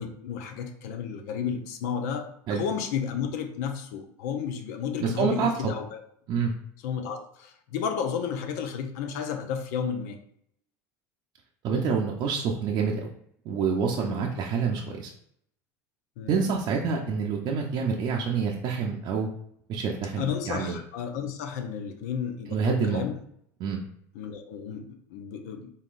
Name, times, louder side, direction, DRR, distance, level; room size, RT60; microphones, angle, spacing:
voice 1, 0.0-6.0 6.8-10.2 13.9-14.2 16.2-16.4 20.2-23.2 24.1-25.7, left 7 dB, 75° left, 6 dB, 0.6 m, -32 dB
voice 2, 5.0-5.7 6.3-6.5 11.6-13.1 13.4-15.1 16.3-19.3 19.7-20.8 22.5-23.0 23.6-23.8, right 5 dB, 55° right, -1 dB, 0.6 m, -27 dB
4.0 x 3.7 x 2.5 m, 0.69 s
hypercardioid pair, 90°, 9 cm